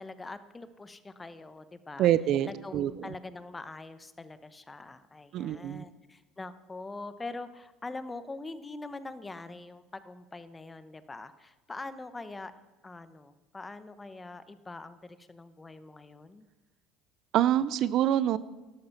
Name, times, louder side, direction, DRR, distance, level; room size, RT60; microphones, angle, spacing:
voice 1, 0.0-2.1 2.4-12.5 12.8-16.5, left 3 dB, 20° left, 13 dB, 1.0 m, -43 dB
voice 2, 2.0-3.1 5.3-5.8 17.3-18.4, right 11 dB, 60° right, 16 dB, 0.6 m, -26 dB
12.5 x 12.0 x 5.9 m, 1.1 s
hypercardioid pair, 80°, 0 cm